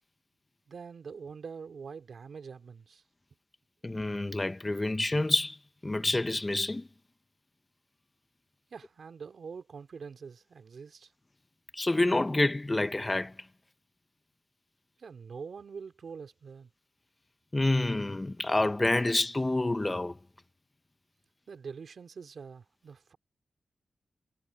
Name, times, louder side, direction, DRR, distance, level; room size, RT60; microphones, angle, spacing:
voice 1, 0.7-3.0 8.7-11.1 15.0-16.7 21.5-23.2, right 5 dB, 70° right, 3.0 m, -44 dB
voice 2, 3.8-5.6 5.8-6.9 11.7-13.3 17.5-20.2, left 2 dB, 30° left, 1.2 m, -28 dB
supercardioid pair, 40°, 0 cm